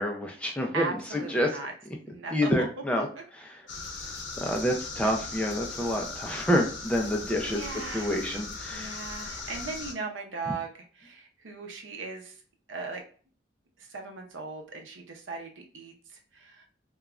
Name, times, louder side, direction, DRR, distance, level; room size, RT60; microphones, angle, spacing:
voice 1, 0.0-1.6 2.3-3.1 3.3-3.6 4.4-7.7 7.9-9.0, equal, 5° left, 1 dB, 0.4 m, -28 dB
voice 2, 0.7-1.7 2.1-2.7 2.9-3.2 7.5-8.3 8.7-12.4 12.7-13.0 13.8-16.7, right 3 dB, 85° right, 3 dB, 0.6 m, -38 dB
sound 1, 3.7-9.9, left 4 dB, 80° left, 0.8 m, -38 dB
3.0 x 2.3 x 2.4 m, 0.42 s
head